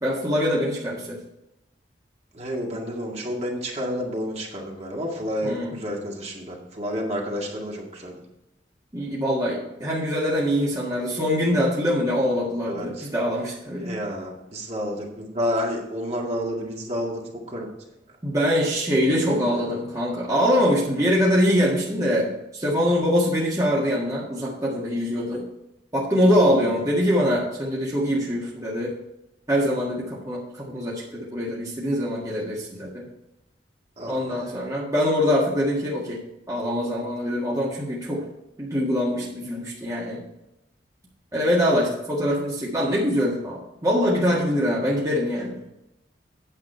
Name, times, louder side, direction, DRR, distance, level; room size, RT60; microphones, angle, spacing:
voice 1, 0.0-1.2 5.4-5.7 8.9-14.0 18.2-25.4 25.9-28.9 29.5-33.0 34.1-36.2 36.5-38.2 38.6-40.2 41.3-45.6, equal, 20° right, -5 dB, 1.7 m, -23 dB
voice 2, 2.3-8.2 12.7-13.1 13.8-17.2 17.5-17.7 19.2-19.7 26.5-26.7 34.0-34.6, equal, 35° right, -1 dB, 2.0 m, -30 dB
9.2 x 7.5 x 4.4 m, 0.89 s
head